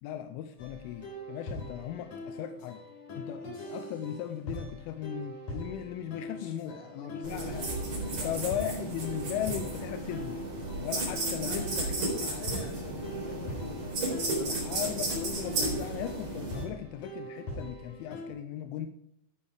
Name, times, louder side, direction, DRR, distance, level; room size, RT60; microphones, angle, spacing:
voice 1, 0.0-2.8 3.1-7.7 8.1-10.4 10.8-11.9 12.2-12.3 14.4-18.9, left 11 dB, 90° left, 8 dB, 3.2 m, -37 dB
sound 1, 0.6-18.3, equal, 45° left, 4.3 m, -42 dB
voice 2, 6.3-7.4 8.0-8.6 10.8-10.9 11.4-14.5, left 3 dB, 75° left, 2 dB, 4.8 m, -46 dB
sound 2, 7.2-16.6, right 2 dB, 35° right, 4.9 m, -34 dB
13.5 x 8.7 x 4.9 m, 0.70 s
omnidirectional pair, 5.5 m